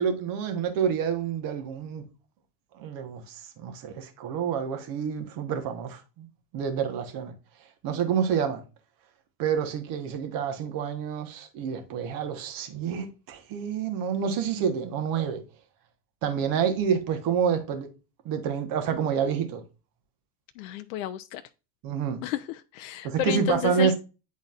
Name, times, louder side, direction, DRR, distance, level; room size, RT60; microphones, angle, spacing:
voice 1, 0.0-2.0 2.7-6.3 6.5-7.3 7.8-8.6 9.4-15.4 16.2-17.9 18.2-19.6 21.8-22.2 23.0-24.0, right 7 dB, 45° right, 1.5 m, -28 dB
voice 2, 20.6-21.4 22.2-24.0, left 14 dB, 60° left, 0.6 m, -31 dB
9.5 x 4.0 x 2.6 m
hypercardioid pair, 85°, 47 cm